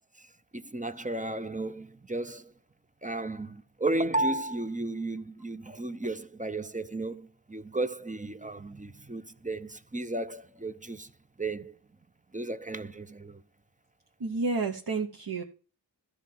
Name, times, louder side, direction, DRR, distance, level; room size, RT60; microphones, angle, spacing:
voice 1, 0.2-2.5 3.0-11.1 11.4-11.8 12.3-13.4, right 2 dB, 15° right, 0.6 m, -34 dB
voice 2, 14.2-15.4, right 3 dB, 55° right, 1.0 m, -30 dB
13.5 x 4.5 x 7.8 m
wide cardioid pair, 60°, 46 cm